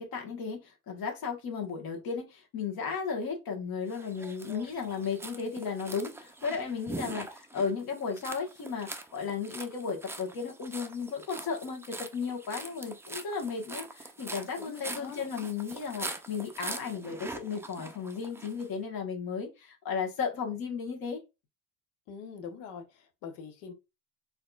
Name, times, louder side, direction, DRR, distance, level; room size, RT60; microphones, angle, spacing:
voice 1, 0.0-21.2, left 5 dB, 55° left, 1.4 m, -35 dB
sound 1, 3.9-18.7, right 2 dB, 5° right, 0.4 m, -43 dB
voice 2, 14.6-15.2 22.1-23.7, left 6 dB, 85° left, 0.9 m, -44 dB
4.1 x 2.7 x 2.3 m
supercardioid pair, 85°, 42 cm